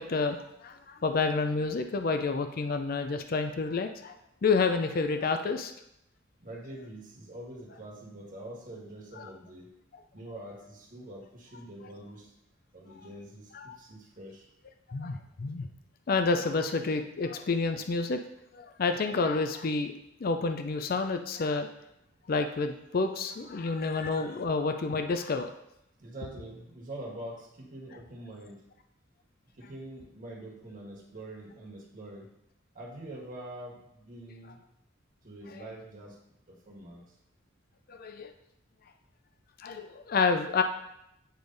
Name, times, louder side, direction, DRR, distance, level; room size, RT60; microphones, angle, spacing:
voice 1, 0.0-4.1 4.4-5.7 13.5-13.7 14.9-15.7 16.1-18.2 18.5-19.9 20.2-21.7 22.3-25.5 37.9-38.3 39.6-40.6, left 4 dB, 50° left, 7 dB, 0.5 m, -29 dB
voice 2, 6.4-9.7 10.1-12.3 12.7-14.5 26.0-28.6 29.6-32.3 32.7-34.6 35.2-36.2 36.5-37.1, right 1 dB, 45° right, -2 dB, 1.6 m, -45 dB
9.0 x 3.3 x 4.0 m, 0.80 s
head